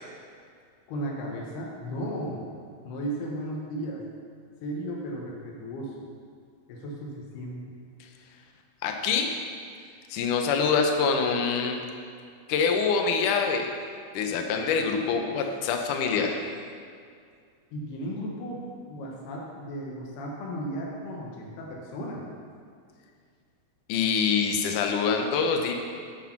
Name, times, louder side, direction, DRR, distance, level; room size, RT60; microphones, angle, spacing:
voice 1, 0.9-2.5 2.8-4.0 4.6-6.1 6.7-7.6 17.7-22.2, equal, 90° left, -2 dB, 3.2 m, -35 dB
voice 2, 8.8-9.3 10.1-11.8 12.5-13.7 14.1-16.4 23.9-25.7, left 5 dB, 70° left, 3 dB, 2.1 m, -25 dB
8.8 x 8.4 x 5.9 m, 2.2 s
omnidirectional pair, 4.4 m